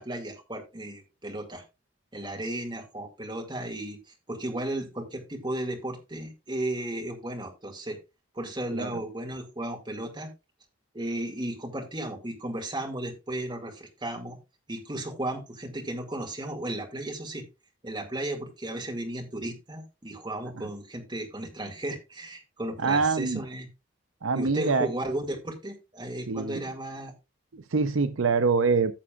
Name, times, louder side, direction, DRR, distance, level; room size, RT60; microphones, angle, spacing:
voice 1, 0.0-1.6 2.1-4.0 4.3-8.0 8.3-10.3 10.9-14.4 14.7-17.5 17.8-23.7 24.3-27.1, right 1 dB, 20° right, 2.1 m, -34 dB
voice 2, 22.8-23.4 24.2-24.9 26.3-26.6 27.5-28.9, right 4 dB, 75° right, 0.6 m, -25 dB
14.5 x 6.8 x 2.4 m
head